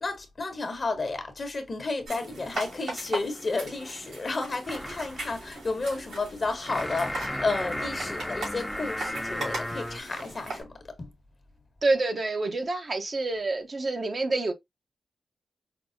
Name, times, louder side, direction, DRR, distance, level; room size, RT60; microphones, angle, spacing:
voice 1, 0.0-10.7 11.0-11.1, left 3 dB, 45° left, 1.1 m, -32 dB
sound 1, 2.1-10.6, right 2 dB, 90° right, 2.8 m, -39 dB
sound 2, 4.6-10.0, left 1 dB, 5° left, 0.5 m, -35 dB
voice 2, 11.8-14.5, right 2 dB, 45° right, 0.8 m, -27 dB
5.3 x 2.0 x 2.6 m
cardioid pair, 65°, 0 cm